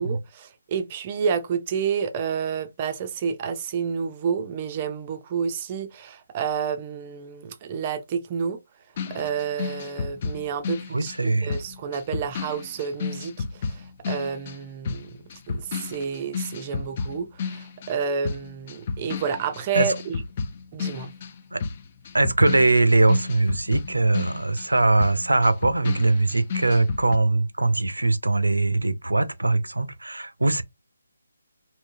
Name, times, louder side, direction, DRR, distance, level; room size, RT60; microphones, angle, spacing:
voice 1, 0.0-8.6 9.1-15.2 15.5-20.2 20.7-21.1, right 6 dB, 30° right, 0.5 m, -29 dB
sound 1, 9.0-18.0 18.2-27.2, left 5 dB, 35° left, 0.5 m, -32 dB
voice 2, 10.9-11.6 19.7-19.9 21.5-21.6 22.1-30.6, right 2 dB, 85° right, 0.6 m, -21 dB
3.6 x 2.7 x 2.7 m
figure-of-eight pair, 150°, 0 cm